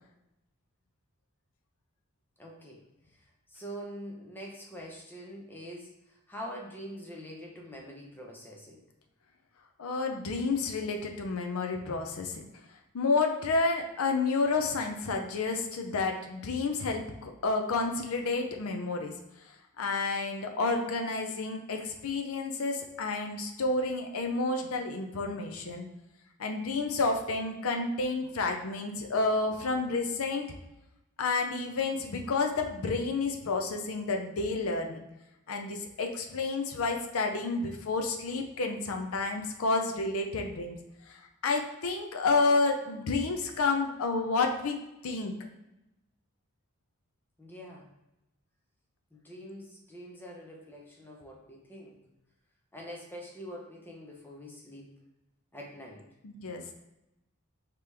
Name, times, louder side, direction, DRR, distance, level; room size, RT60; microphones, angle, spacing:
voice 1, 2.4-2.8 3.5-8.9 47.4-47.9 49.1-52.0 52.7-55.0 55.5-56.1, equal, 10° left, -1 dB, 0.8 m, -44 dB
voice 2, 9.8-12.5 12.9-19.1 19.8-25.9 26.4-30.5 31.2-35.0 35.5-40.8 41.1-45.3 56.2-56.6, left 3 dB, 70° left, 3 dB, 0.5 m, -30 dB
5.1 x 3.0 x 3.4 m, 0.92 s
head